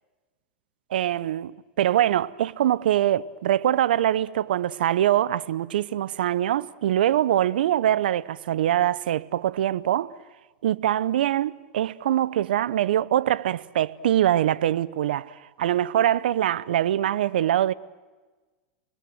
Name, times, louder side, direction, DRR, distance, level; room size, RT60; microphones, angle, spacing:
voice 1, 0.9-10.1 10.6-17.7, right 11 dB, 85° right, 0.7 m, -23 dB
29.5 x 21.0 x 7.8 m
supercardioid pair, 130°, 5 cm